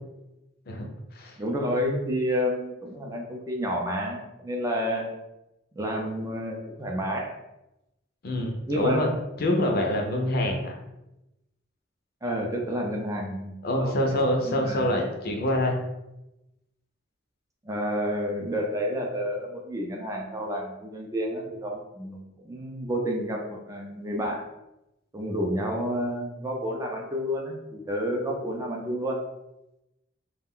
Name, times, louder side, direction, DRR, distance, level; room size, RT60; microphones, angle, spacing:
voice 1, 1.4-5.1 5.8-7.3 8.7-9.0 12.2-14.1 14.4-14.9 17.6-24.4 25.1-29.2, equal, 15° right, 0 dB, 0.4 m, -30 dB
voice 2, 8.2-9.1 9.4-10.8 13.6-15.7, left 1 dB, 55° left, 2 dB, 0.5 m, -25 dB
2.3 x 2.1 x 3.6 m, 0.93 s
head